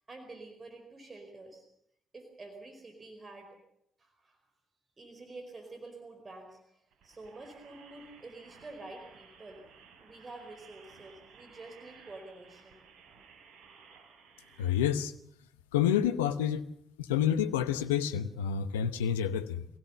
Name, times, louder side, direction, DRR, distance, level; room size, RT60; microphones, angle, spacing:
voice 1, 0.0-1.6 2.1-3.6 4.0-4.4 5.0-9.6 10.0-12.8, right 2 dB, 35° right, 5 dB, 4.7 m, -48 dB
sound 1, 6.9-14.9, right 5 dB, 65° right, 3.8 m, -57 dB
voice 2, 14.6-15.1 15.7-16.6 17.0-19.7, left 9 dB, 85° left, 10 dB, 0.9 m, -28 dB
24.5 x 17.0 x 6.9 m, 0.75 s
hypercardioid pair, 45°, 0 cm